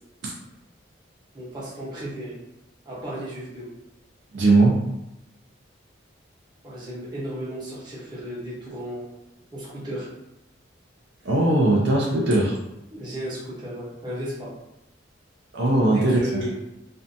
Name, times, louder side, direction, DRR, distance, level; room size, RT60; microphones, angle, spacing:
voice 1, 1.3-2.4 2.9-3.7 6.6-9.1 9.5-10.1 12.9-14.5 15.9-16.6, right 1 dB, 20° right, -8 dB, 0.8 m, -34 dB
voice 2, 4.3-4.8 11.2-12.6 15.5-16.4, right 2 dB, 65° right, -3 dB, 0.4 m, -19 dB
2.5 x 2.2 x 2.6 m, 0.90 s
head